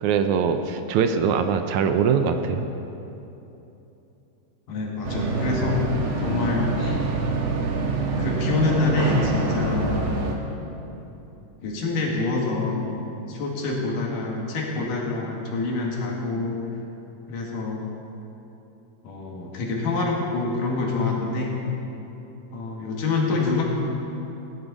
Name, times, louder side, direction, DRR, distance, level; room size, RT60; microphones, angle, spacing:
voice 1, 0.0-2.7, right 6 dB, 75° right, 8 dB, 1.9 m, -22 dB
voice 2, 4.7-5.8 6.2-7.2 8.2-10.0 11.6-12.9 13.3-16.5 17.3-17.8 19.0-21.6 22.5-23.6, left 3 dB, 85° left, -2 dB, 3.5 m, -26 dB
sound 1, 5.0-10.3, right 3 dB, 55° right, 1.6 m, -25 dB
17.5 x 10.5 x 5.2 m, 3.0 s
omnidirectional pair, 3.7 m